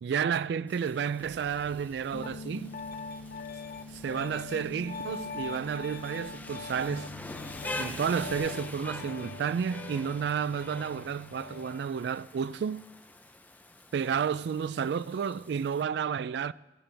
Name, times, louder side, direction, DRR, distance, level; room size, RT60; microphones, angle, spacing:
voice 1, 0.0-2.7 3.9-7.1 7.8-12.8 13.9-16.5, right 7 dB, 70° right, 0.3 m, -31 dB
Rain, 0.7-15.8, left 2 dB, 10° left, 0.6 m, -46 dB
sound 1, 1.2-8.4, right 1 dB, 40° right, 2.1 m, -56 dB
Piano, 2.1-11.8, left 4 dB, 55° left, 0.5 m, -42 dB
16.5 x 13.5 x 3.4 m
head